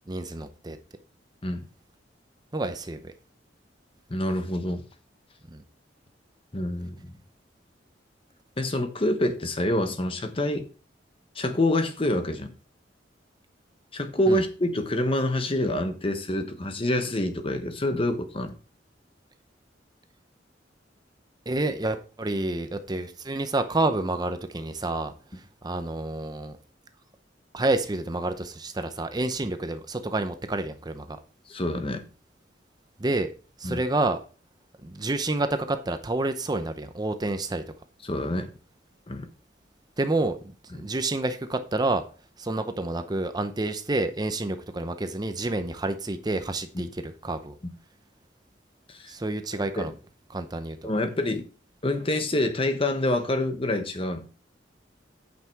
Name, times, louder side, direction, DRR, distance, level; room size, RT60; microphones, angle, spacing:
voice 1, 0.1-0.8 2.5-3.1 5.5-5.6 14.3-14.4 21.5-25.1 25.6-26.6 27.5-31.2 33.0-33.3 33.6-34.2 34.8-37.6 40.0-40.4 40.7-42.0 42.4-47.6 49.1-49.9 50.3-50.9, right 2 dB, 20° right, 0.7 m, -29 dB
voice 2, 4.1-4.8 6.5-7.1 8.6-10.7 11.3-12.5 13.9-18.5 31.5-32.0 33.6-33.8 38.0-38.5 39.1-39.3 40.7-40.9 46.7-46.8 48.9-49.1 49.8-49.9 50.8-51.4 51.8-54.2, left 1 dB, 30° left, 1.0 m, -27 dB
8.9 x 5.7 x 4.6 m
head